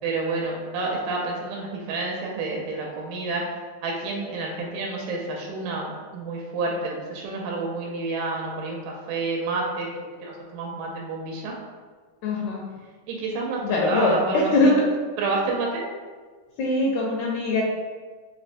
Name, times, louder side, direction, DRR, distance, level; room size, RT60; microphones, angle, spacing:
voice 1, 0.0-3.4 3.8-11.5 13.1-13.6 13.9-14.7 15.2-15.9, right 3 dB, 85° right, -1 dB, 1.9 m, -29 dB
voice 2, 12.2-12.6 13.6-14.9 16.6-17.6, left 2 dB, 80° left, -2 dB, 1.7 m, -22 dB
4.9 x 2.1 x 2.5 m, 1.5 s
omnidirectional pair, 3.3 m